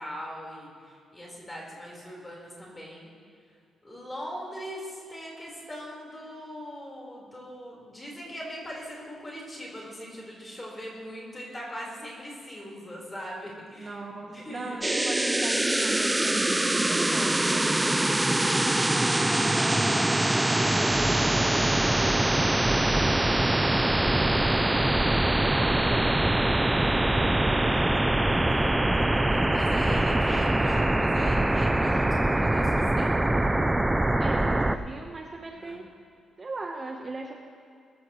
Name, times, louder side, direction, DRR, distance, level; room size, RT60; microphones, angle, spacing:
voice 1, 0.0-3.1 3.8-14.0 14.2-15.1 20.4-20.9 24.8-25.3 28.3-33.2 35.5-35.8, equal, 15° left, -3 dB, 4.4 m, -41 dB
voice 2, 13.8-18.4 19.0-24.6 25.1-28.1 34.2-35.8 36.4-37.4, right 3 dB, 30° right, 1 dB, 1.1 m, -40 dB
sound 1, 14.8-34.8, right 1 dB, 10° right, 0.5 m, -23 dB
22.0 x 14.5 x 3.2 m, 2.3 s
cardioid pair, 140°, 0 cm